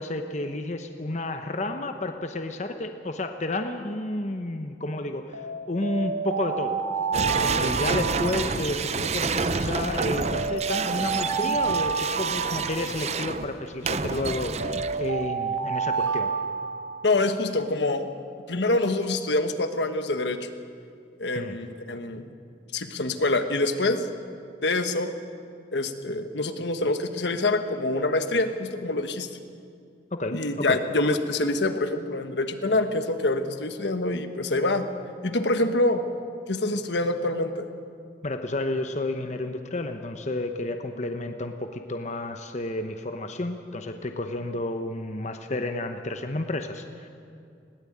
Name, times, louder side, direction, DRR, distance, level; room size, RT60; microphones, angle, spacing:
voice 1, 0.0-6.8 7.2-16.3 21.3-21.6 30.1-30.8 38.2-47.1, left 2 dB, 40° left, 6 dB, 0.9 m, -31 dB
Alarm, 5.3-9.0 9.7-13.4 14.1-17.3, right 5 dB, 85° right, 2.1 m, -30 dB
sound 1, 7.1-15.3, right 4 dB, 35° right, 0.6 m, -29 dB
voice 2, 17.0-18.1 18.5-20.5 21.2-22.2 22.7-24.1 24.6-25.1 25.7-29.3 30.3-34.8 35.2-36.0 36.5-37.7, left 2 dB, 70° left, 8 dB, 1.2 m, -25 dB
20.5 x 17.0 x 8.6 m, 2.4 s
head